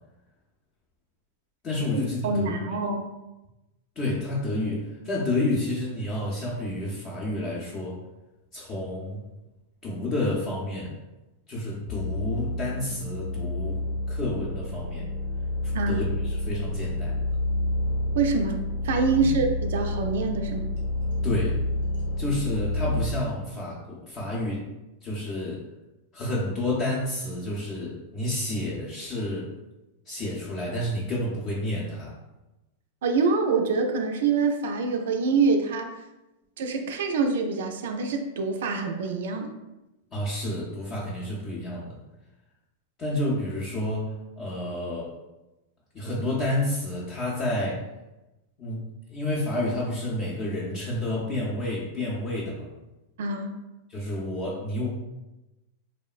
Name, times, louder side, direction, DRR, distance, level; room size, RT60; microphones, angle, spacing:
voice 1, 1.6-2.6 4.0-8.0 8.5-9.2 9.8-11.0 11.5-13.8 14.1-15.1 15.6-17.2 19.1-19.3 21.2-21.6 22.2-24.7 25.0-25.7 26.1-29.5 30.1-32.2 40.1-42.0 43.0-45.1 45.9-47.9 48.6-52.7 53.9-54.9, left 1 dB, 30° left, -5 dB, 0.5 m, -30 dB
voice 2, 2.2-3.1 15.7-16.1 18.1-20.7 33.0-36.0 36.6-39.5 53.2-53.5, right 4 dB, 75° right, 5 dB, 0.3 m, -25 dB
sound 1, 11.9-23.1, left 1 dB, 80° left, 1.0 m, -29 dB
2.9 x 2.0 x 2.3 m, 1.0 s
hypercardioid pair, 130°, 0 cm